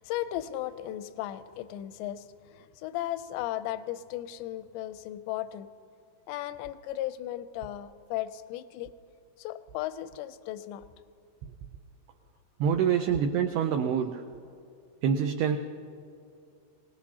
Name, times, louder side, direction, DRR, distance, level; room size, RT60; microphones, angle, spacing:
voice 1, 0.0-5.7 6.3-8.9 9.4-10.9, left 13 dB, 85° left, 13 dB, 2.6 m, -36 dB
voice 2, 12.6-14.2 15.0-15.6, right 7 dB, 85° right, 6 dB, 2.2 m, -26 dB
24.0 x 19.0 x 2.8 m, 2.4 s
omnidirectional pair, 5.3 m